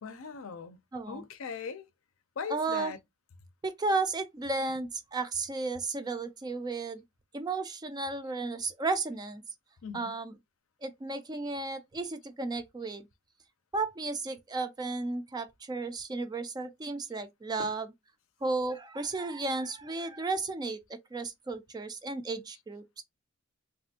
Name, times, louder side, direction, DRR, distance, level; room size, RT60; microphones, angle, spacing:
voice 1, 0.0-0.8 1.1-1.9 2.4-3.0 9.8-10.2 17.6-17.7, left 6 dB, 65° left, 0.5 m, -39 dB
voice 2, 0.9-1.2 2.5-2.9 3.6-7.0 7.3-9.4 9.9-10.4 10.8-13.1 13.7-17.9 18.4-23.0, right 3 dB, 20° right, 0.3 m, -34 dB
3.3 x 2.5 x 2.7 m
head